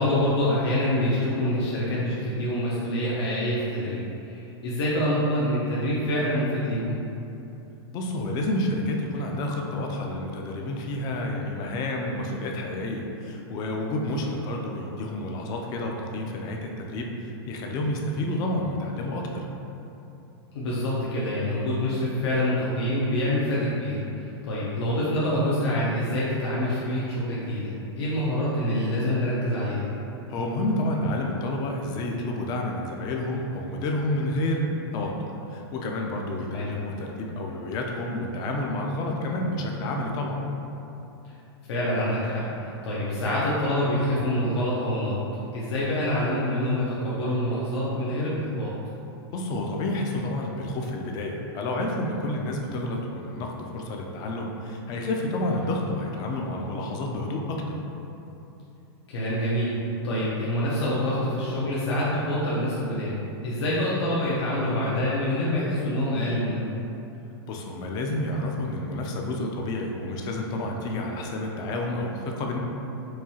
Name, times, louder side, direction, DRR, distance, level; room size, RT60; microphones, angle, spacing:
voice 1, 0.0-7.0 20.5-29.9 36.4-36.7 41.7-45.2 45.5-48.7 59.1-59.7 60.0-63.1 63.4-66.7, left 1 dB, 80° left, -8 dB, 0.7 m, -26 dB
voice 2, 7.9-19.4 30.3-34.7 34.9-40.4 49.3-57.8 67.5-72.6, left 1 dB, 30° left, 1 dB, 0.4 m, -29 dB
4.6 x 2.3 x 2.8 m, 2.9 s
supercardioid pair, 145°, 14 cm